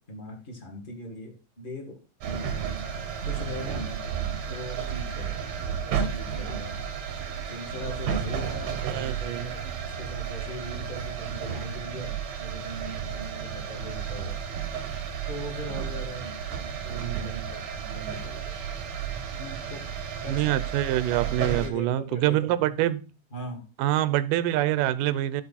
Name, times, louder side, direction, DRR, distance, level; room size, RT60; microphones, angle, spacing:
voice 1, 0.0-2.0 2.8-3.9 4.5-5.5 5.8-6.8 7.3-9.6 10.0-14.4 14.8-14.9 15.3-16.3 17.0-18.5 19.3-19.8 20.2-20.5 21.4-22.8 23.3-23.6, left 1 dB, 20° left, 1 dB, 1.7 m, -40 dB
sound 1, 2.2-21.7, right 7 dB, 60° right, 1.5 m, -32 dB
voice 2, 8.8-9.5 16.9-17.6 20.3-23.0 23.8-25.4, right 13 dB, 90° right, 15 dB, 2.3 m, -26 dB
12.5 x 4.4 x 4.1 m, 0.34 s
omnidirectional pair, 3.8 m